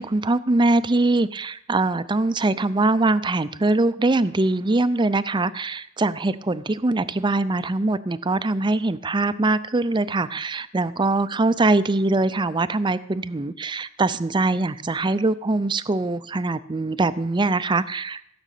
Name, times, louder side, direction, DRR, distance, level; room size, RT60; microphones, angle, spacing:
voice 1, 0.0-18.2, right 2 dB, 20° right, 14 dB, 0.5 m, -22 dB
16.5 x 6.1 x 8.3 m, 0.72 s
head